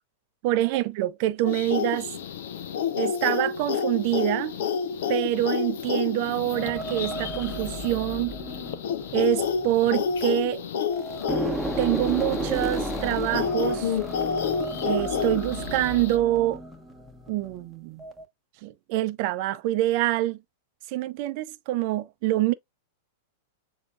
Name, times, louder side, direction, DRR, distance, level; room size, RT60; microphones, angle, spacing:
voice 1, 0.4-2.1 3.0-4.6 5.1-8.3 9.1-10.6 11.8-14.0 14.8-16.6 17.3-18.0 18.6-20.4 20.9-22.5, right 15 dB, 50° right, 0.6 m, -26 dB
sound 1, 1.4-16.2, left 6 dB, 65° left, 0.7 m, -30 dB
sound 2, 6.5-10.5 10.9-17.6 18.0-18.2, right 1 dB, ahead, 1.3 m, -34 dB
6.9 x 2.8 x 2.4 m
hypercardioid pair, 105°, 0 cm